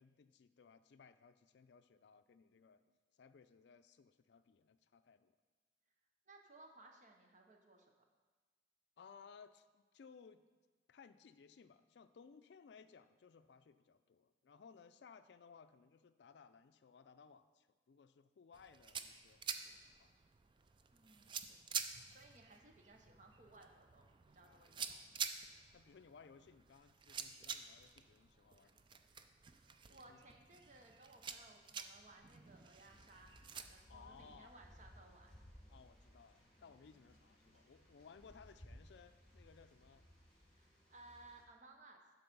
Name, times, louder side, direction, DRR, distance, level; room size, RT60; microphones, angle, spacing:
voice 1, 0.0-2.9 3.1-5.3 9.0-10.4 10.9-20.1 21.5-21.7 24.4-25.4 25.7-28.9 29.7-29.8 30.1-30.2 33.9-34.5 35.7-40.1, left 5 dB, 70° left, 11 dB, 0.4 m, -62 dB
voice 2, 6.3-7.9 20.9-21.8 22.0-25.0 29.5-35.3 40.5-42.0, right 2 dB, 45° right, 3 dB, 0.9 m, -62 dB
sound 1, 18.5-33.6, right 6 dB, 25° right, 0.4 m, -49 dB
sound 2, 32.4-41.4, equal, 5° left, 2.3 m, -62 dB
11.5 x 4.0 x 5.3 m, 1.4 s
head